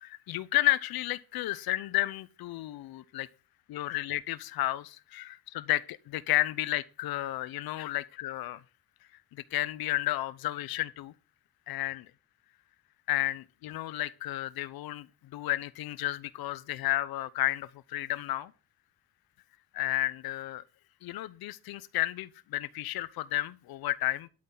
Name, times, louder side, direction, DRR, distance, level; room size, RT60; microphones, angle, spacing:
voice 1, 0.0-3.3 3.7-8.6 9.3-11.1 11.7-12.1 13.1-15.1 15.3-18.5 19.7-20.6 21.0-24.3, left 15 dB, 75° left, 0.8 m, -32 dB
12.0 x 8.8 x 3.9 m
cardioid pair, 105°, 37 cm